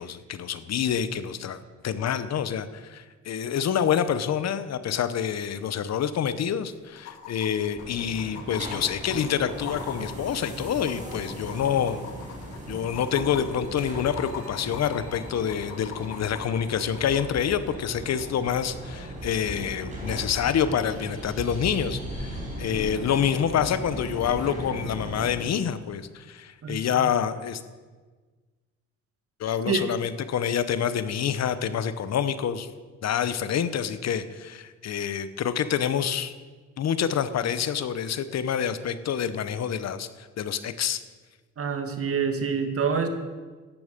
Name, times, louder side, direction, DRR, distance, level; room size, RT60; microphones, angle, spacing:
voice 1, 0.0-12.0 12.7-27.6 29.4-32.7 33.0-36.3 36.8-41.0, left 8 dB, 60° left, 12 dB, 0.9 m, -27 dB
sound 1, 5.9-6.0 6.2-6.3 7.0-17.3 18.9-19.0, left 9 dB, 90° left, 1.7 m, -42 dB
sound 2, 7.8-25.3, right 1 dB, 25° right, 4.8 m, -37 dB
voice 2, 41.6-43.1, right 6 dB, 50° right, 7 dB, 1.6 m, -26 dB
13.5 x 11.0 x 5.2 m, 1.4 s
cardioid pair, 90°, 30 cm